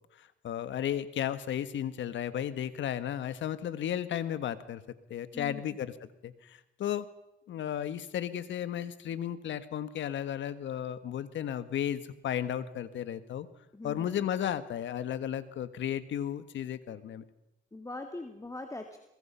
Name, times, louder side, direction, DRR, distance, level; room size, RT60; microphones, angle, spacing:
voice 1, 0.2-4.8 5.1-7.0 7.5-13.5 13.8-17.2, left 10 dB, 70° left, 13 dB, 1.5 m, -34 dB
voice 2, 13.7-14.1 17.7-19.0, left 2 dB, 15° left, 6 dB, 2.1 m, -41 dB
24.0 x 21.5 x 5.7 m, 0.90 s
cardioid pair, 90°, 20 cm